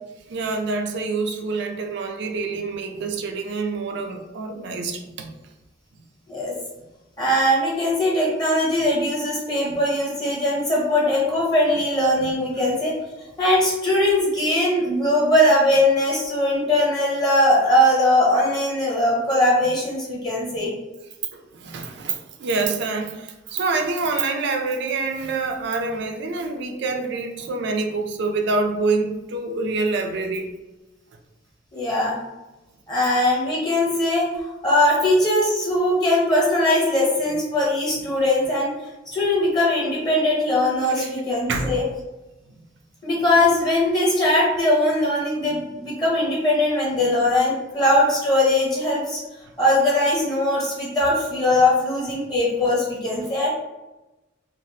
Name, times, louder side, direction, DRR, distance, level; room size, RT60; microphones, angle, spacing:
voice 1, 0.3-5.3 9.7-9.8 12.2-12.3 21.3-30.5 41.0-41.1 41.5-41.7, right 3 dB, 60° right, 4 dB, 0.4 m, -26 dB
voice 2, 7.2-12.9 13.4-20.7 31.7-32.2 32.9-38.7 39.1-41.8 43.0-49.2 49.6-53.5, left 1 dB, 20° left, -5 dB, 0.7 m, -20 dB
3.2 x 2.1 x 2.7 m, 1.0 s
head